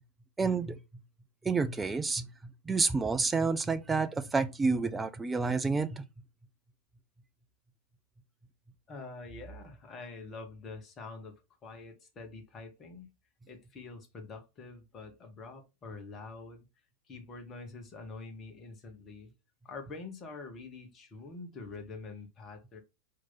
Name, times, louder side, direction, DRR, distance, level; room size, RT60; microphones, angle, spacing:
voice 1, 0.4-0.8 1.4-2.3 2.6-6.0, right 4 dB, 10° right, 0.5 m, -29 dB
voice 2, 8.9-13.1 13.5-16.6 17.1-19.3 19.6-22.8, left 3 dB, 25° left, 1.1 m, -46 dB
4.6 x 2.9 x 3.8 m
figure-of-eight pair, 90°, 0 cm